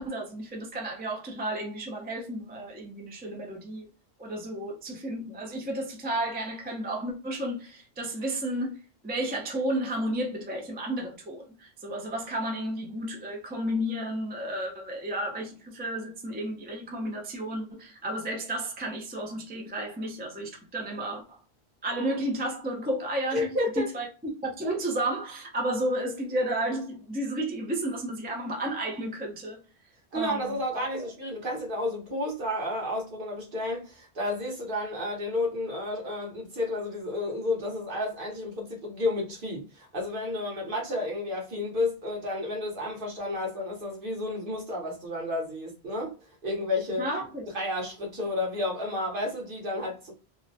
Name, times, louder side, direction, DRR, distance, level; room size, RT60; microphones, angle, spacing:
voice 1, 0.0-3.9 4.2-8.8 9.0-21.4 21.8-23.5 23.8-24.1 24.4-29.6 30.1-31.0 47.0-47.4, right 1 dB, 15° right, 0.4 m, -32 dB
voice 2, 23.3-23.9 30.1-46.1 46.4-47.1 47.5-50.1, left 2 dB, 55° right, 1.2 m, -31 dB
2.8 x 2.1 x 2.6 m
omnidirectional pair, 1.1 m